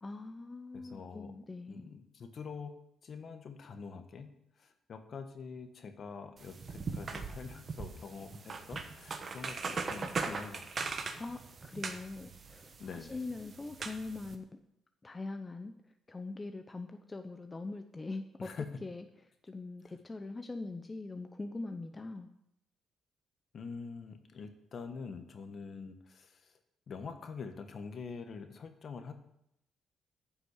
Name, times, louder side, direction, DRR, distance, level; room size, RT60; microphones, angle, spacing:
voice 1, 0.0-1.9 11.2-14.4 15.0-15.7 16.1-18.5 18.8-19.0 19.5-22.3, left 3 dB, 25° left, 7 dB, 0.8 m, -42 dB
voice 2, 0.7-1.3 1.7-2.7 3.0-10.7 12.8-13.2 18.4-18.7 19.9-20.0 23.5-26.5 26.9-29.1, left 5 dB, 55° left, 8 dB, 1.4 m, -45 dB
sound 1, 6.4-14.3, right 4 dB, 45° right, 1.3 m, -40 dB
10.5 x 6.0 x 8.2 m, 0.80 s
cardioid pair, 90°, 0 cm